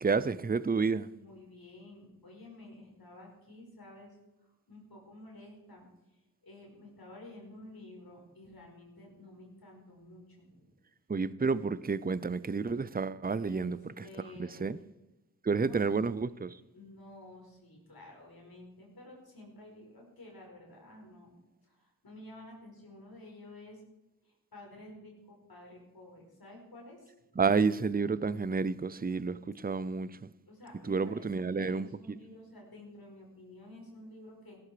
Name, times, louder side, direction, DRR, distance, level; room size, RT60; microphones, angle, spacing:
voice 1, 0.0-1.1 11.1-14.0 14.4-14.8 15.4-16.6 27.4-30.3 30.9-31.9, right 4 dB, 25° right, 0.6 m, -30 dB
voice 2, 1.2-10.7 13.4-13.7 14.0-14.7 15.5-15.8 16.7-23.8 24.2-27.4 30.5-31.3 31.5-34.6, left 1 dB, 80° left, 5.1 m, -52 dB
17.0 x 13.0 x 5.0 m
wide cardioid pair, 60°, 36 cm